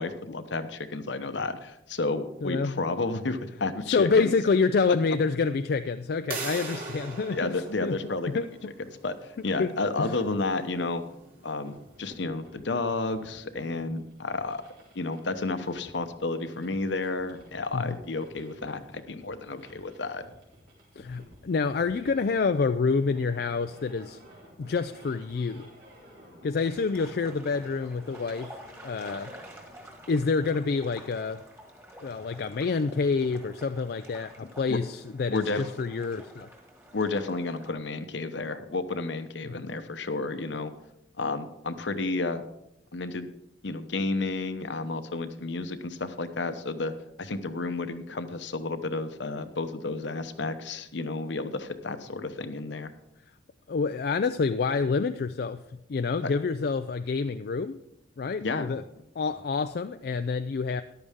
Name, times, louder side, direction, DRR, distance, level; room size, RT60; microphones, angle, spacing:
voice 1, 0.0-4.3 7.3-8.5 9.0-11.0 11.4-14.6 14.9-20.2 34.7-34.8 35.3-35.6 36.9-40.7 41.2-42.4 42.9-43.3 43.6-46.9 47.2-52.9 58.4-58.8, left 3 dB, 70° left, 9 dB, 0.9 m, -31 dB
voice 2, 2.4-2.8 3.9-8.0 8.3-8.5 9.6-10.2 17.7-18.0 21.0-24.2 24.6-25.7 26.4-28.5 28.8-29.3 30.1-31.4 32.0-36.5 39.4-39.5 53.7-55.6 55.9-57.8 58.2-58.8 59.2-60.8, left 4 dB, 55° left, 9 dB, 0.4 m, -27 dB
sound 1, 6.3-11.9, right 3 dB, 50° right, 2.8 m, -41 dB
sound 2, 11.6-30.6, equal, 75° right, 3.9 m, -53 dB
sound 3, 26.5-37.7, equal, 15° right, 1.8 m, -49 dB
14.0 x 11.0 x 3.6 m, 0.82 s
head